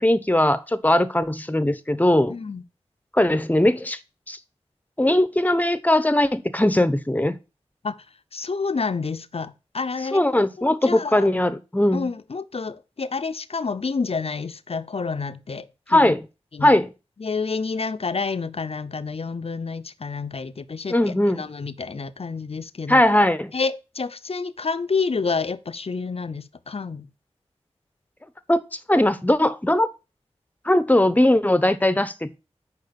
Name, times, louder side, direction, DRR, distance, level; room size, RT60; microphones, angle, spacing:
voice 1, 0.0-2.3 3.1-4.0 4.3-4.4 5.0-7.4 10.1-12.1 15.9-16.2 16.6-16.9 20.9-21.4 22.9-23.5 28.5-28.6 28.9-29.9 30.7-32.4, left 1 dB, 15° left, 0.9 m, -19 dB
voice 2, 2.3-2.6 7.8-7.9 8.3-11.3 11.9-16.1 16.5-16.8 17.2-23.0 23.5-27.1, left 4 dB, 60° left, 0.7 m, -29 dB
6.5 x 5.1 x 6.9 m
wide cardioid pair, 50°, 11 cm